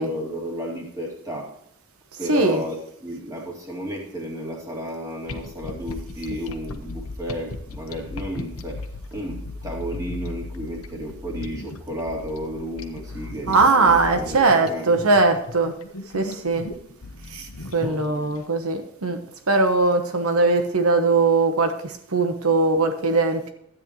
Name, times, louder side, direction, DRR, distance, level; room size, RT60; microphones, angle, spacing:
voice 1, 0.0-1.6 2.2-8.8 9.1-15.1 17.8-18.4, equal, 15° right, -2 dB, 2.5 m, -33 dB
voice 2, 2.3-2.6 13.5-15.7 16.1-16.7 17.3-19.2 19.5-23.5, right 3 dB, 85° right, 7 dB, 1.1 m, -20 dB
sound 1, 5.3-18.4, left 2 dB, 80° left, 0.9 m, -37 dB
13.0 x 9.1 x 3.1 m, 0.72 s
head